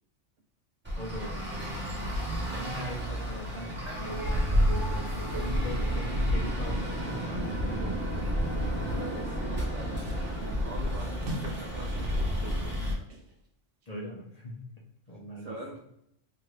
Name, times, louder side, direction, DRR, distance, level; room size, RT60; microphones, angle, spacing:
Traffic noise roadway noise, 0.8-12.9, equal, 10° right, 0.9 m, -30 dB
voice 1, 0.9-2.1 2.4-8.1 13.9-14.6 15.1-15.5, left 1 dB, 40° left, -4 dB, 0.7 m, -41 dB
voice 2, 2.6-2.9 6.1-6.2 8.9-13.1 15.4-15.8, right 1 dB, 60° right, 0 dB, 0.8 m, -44 dB
sound 1, 3.9-10.4, right 1 dB, 25° right, 1.4 m, -44 dB
sound 2, 10.0-10.5 10.8-11.7 12.0-13.3, right 2 dB, 90° right, 1.1 m, -42 dB
3.8 x 2.5 x 3.1 m, 0.79 s
omnidirectional pair, 1.2 m